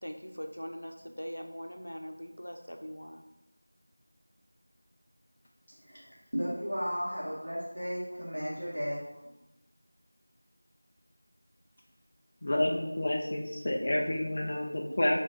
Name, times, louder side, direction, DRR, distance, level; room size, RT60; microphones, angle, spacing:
voice 1, 0.0-3.2, equal, 75° left, 4 dB, 0.7 m, -41 dB
voice 2, 5.9-9.0, equal, 70° right, -8 dB, 1.5 m, -34 dB
voice 3, 12.4-15.2, left 1 dB, 20° left, 1 dB, 0.4 m, -29 dB
5.4 x 3.0 x 3.0 m, 0.94 s
figure-of-eight pair, 175°, 0 cm